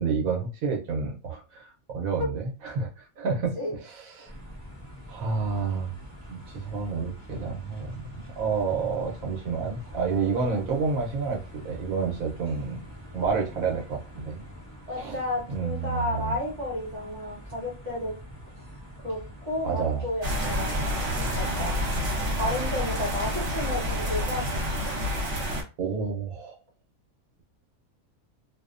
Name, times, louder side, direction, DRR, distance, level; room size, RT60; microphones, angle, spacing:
voice 1, 0.0-3.5 3.8-4.3 5.1-5.9 6.3-12.8 13.1-14.4 14.9-15.2 15.5-16.4 19.6-20.0 25.8-26.6, right 5 dB, 80° right, 0 dB, 1.1 m, -29 dB
sound 1, 4.3-22.9, equal, 20° left, 0.5 m, -45 dB
voice 2, 14.9-18.1 19.0-21.7 22.3-24.4 24.8-24.9, left 1 dB, 30° right, -3 dB, 1.2 m, -32 dB
sound 2, 20.2-25.6, equal, 50° right, 1.2 m, -28 dB
2.6 x 2.1 x 2.4 m, 0.31 s
omnidirectional pair, 1.5 m